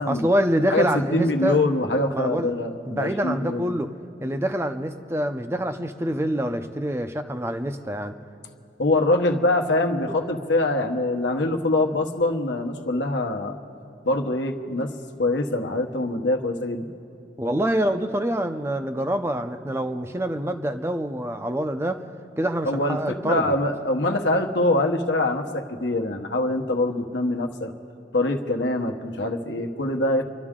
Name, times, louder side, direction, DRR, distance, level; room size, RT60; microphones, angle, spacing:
voice 1, 0.0-1.6 2.1-2.5 2.9-3.9 4.2-8.1 17.4-22.0 22.4-23.5, equal, 15° right, 8 dB, 0.5 m, -26 dB
voice 2, 0.7-3.7 8.8-13.6 14.0-14.9 15.2-16.9 22.6-23.0 23.2-27.7 28.1-30.2, left 2 dB, 80° left, 4 dB, 1.1 m, -24 dB
29.0 x 12.0 x 3.7 m, 2.7 s
head